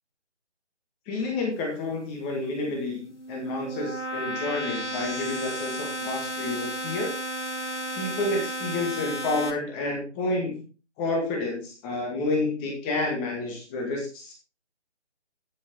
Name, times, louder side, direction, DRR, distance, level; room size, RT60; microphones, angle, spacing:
voice 1, 1.1-7.1 7.9-10.6 11.0-14.3, left 2 dB, 10° left, 1 dB, 1.9 m, -29 dB
sound 1, 3.0-9.5, right 1 dB, 85° left, 5.5 m, -33 dB
14.0 x 6.4 x 4.6 m, 0.34 s
figure-of-eight pair, 165°, 34 cm